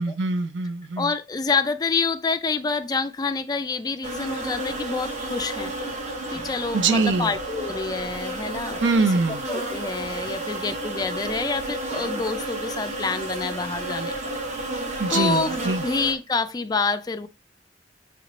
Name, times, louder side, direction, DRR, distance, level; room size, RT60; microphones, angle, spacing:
voice 1, 0.0-1.1 6.7-7.3 8.8-9.4 15.0-15.8, right 3 dB, 75° right, 0.5 m, -23 dB
voice 2, 1.0-5.7 6.3-9.1 9.5-14.2 15.1-15.6 15.8-17.3, left 4 dB, 20° left, 0.3 m, -27 dB
sound 1, 4.0-16.1, right 1 dB, 40° right, 0.9 m, -31 dB
5.2 x 2.9 x 3.1 m
head